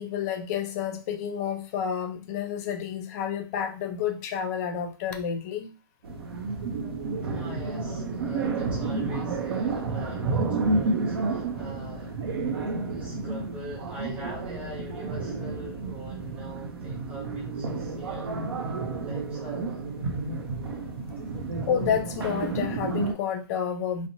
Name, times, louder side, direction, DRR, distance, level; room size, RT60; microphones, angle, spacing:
voice 1, 0.0-5.7 21.7-24.1, left 8 dB, 40° left, 0.5 m, -30 dB
sound 1, 6.0-23.1, right 3 dB, 80° right, 0.6 m, -31 dB
voice 2, 7.2-12.2 12.9-18.4 19.0-19.9, right 2 dB, 10° right, 0.8 m, -43 dB
2.7 x 2.0 x 2.6 m
hypercardioid pair, 145°, 13 cm